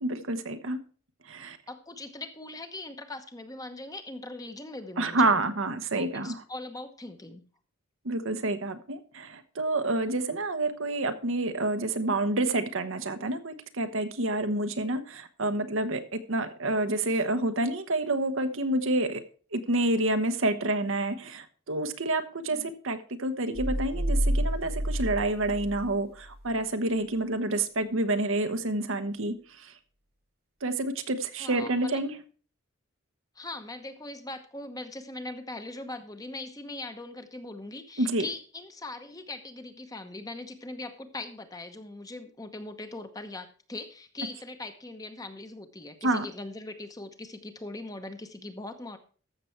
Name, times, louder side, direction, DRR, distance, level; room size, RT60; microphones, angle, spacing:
voice 1, 0.0-0.8 1.2-1.6 5.0-6.4 8.0-19.2 19.5-29.7 30.6-32.2 38.0-38.3 46.0-46.3, right 2 dB, 70° right, 9 dB, 1.0 m, -28 dB
voice 2, 1.7-5.4 5.9-7.5 22.5-22.7 31.4-32.1 33.3-49.0, left 2 dB, 15° left, 8 dB, 0.9 m, -40 dB
sound 1, 23.5-26.5, equal, 45° right, 0.9 m, -29 dB
13.5 x 6.8 x 4.5 m, 0.40 s
head